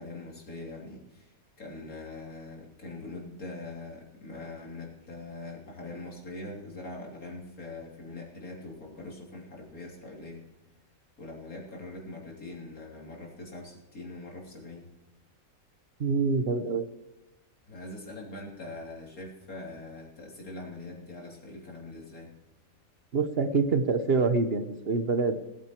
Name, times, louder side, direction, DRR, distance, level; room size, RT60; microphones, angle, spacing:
voice 1, 0.0-1.3 1.6-10.4 11.2-14.9 17.7-22.4, left 2 dB, 85° left, -1 dB, 3.6 m, -42 dB
voice 2, 16.0-16.9 23.1-25.4, right 4 dB, 45° right, 9 dB, 1.2 m, -26 dB
18.5 x 9.2 x 4.5 m, 0.99 s
omnidirectional pair, 1.5 m